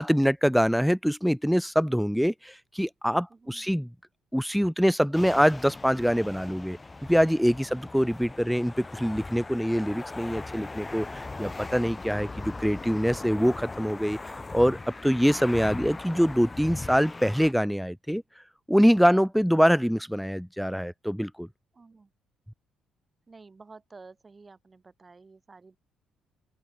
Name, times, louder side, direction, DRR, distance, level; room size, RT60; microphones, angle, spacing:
voice 1, 0.0-3.9 4.3-18.2 18.7-21.5, equal, ahead, 0.6 m, -24 dB
voice 2, 3.3-3.8 7.6-7.9 21.7-22.1 23.3-25.8, right 4 dB, 25° right, 3.7 m, -52 dB
sound 1, 5.1-17.5, left 3 dB, 20° left, 1.5 m, -39 dB
cardioid pair, 90°, 0 cm